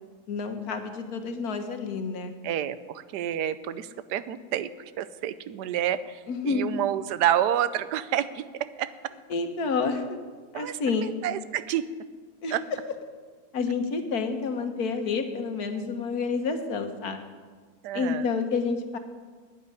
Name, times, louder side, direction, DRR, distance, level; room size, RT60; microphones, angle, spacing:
voice 1, 0.3-2.3 6.3-6.7 9.3-10.0 10.5-11.1 12.4-12.5 13.5-17.2 17.9-19.0, left 4 dB, 70° left, 6 dB, 1.6 m, -29 dB
voice 2, 2.4-8.9 10.5-10.8 11.2-11.9 12.5-12.6 17.8-18.3, right 11 dB, 85° right, 14 dB, 1.2 m, -29 dB
10.5 x 8.8 x 9.6 m, 1.5 s
omnidirectional pair, 1.7 m